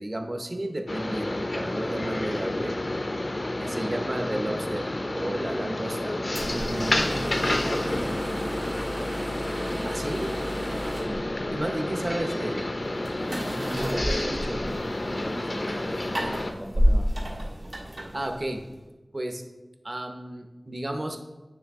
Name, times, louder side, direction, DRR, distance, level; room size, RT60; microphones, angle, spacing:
voice 1, 0.0-2.8 3.6-6.1 6.4-7.0 9.8-10.3 11.5-12.7 13.8-14.6 18.1-18.6 19.1-19.4 19.8-21.2, right 1 dB, 50° right, 4 dB, 0.7 m, -32 dB
sound 1, 0.9-16.5, left 1 dB, 60° left, 0.5 m, -30 dB
sound 2, 6.3-18.8, equal, 85° right, 1.4 m, -32 dB
voice 2, 6.8-8.6 10.9-11.3 12.2-12.5 13.6-17.1, equal, 5° left, 4 dB, 0.5 m, -38 dB
9.1 x 3.3 x 3.5 m, 1.2 s
wide cardioid pair, 60°, 0 cm